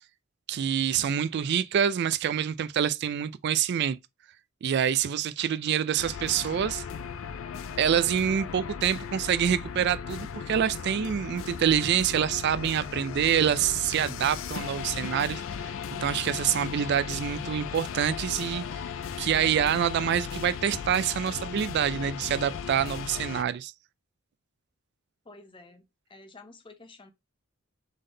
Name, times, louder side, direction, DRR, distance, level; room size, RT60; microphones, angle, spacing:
voice 1, 0.5-4.0 4.6-6.8 7.8-15.4 16.0-18.6 19.2-23.7, right 9 dB, 55° right, 0.3 m, -26 dB
sound 1, 6.0-23.4, left 7 dB, 70° left, 0.5 m, -37 dB
voice 2, 25.2-25.8 26.1-27.1, left 3 dB, 25° left, 0.7 m, -50 dB
3.8 x 3.5 x 3.7 m
head